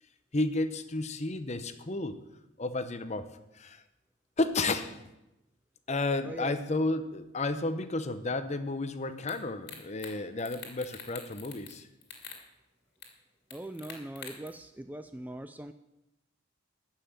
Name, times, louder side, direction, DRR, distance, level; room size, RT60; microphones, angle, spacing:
voice 1, 0.3-2.2 2.6-3.3 3.5-3.8 4.4-5.0 5.9-11.9, left 2 dB, 35° left, 11 dB, 0.8 m, -32 dB
sound 1, 9.3-9.4 9.7-10.1 10.4-11.8 12.0-12.4 13.0-13.1 13.5-14.5, left 7 dB, 55° left, 2.4 m, -45 dB
voice 2, 13.5-15.7, right 1 dB, 10° right, 9 dB, 0.3 m, -41 dB
13.5 x 5.8 x 8.8 m, 0.93 s
head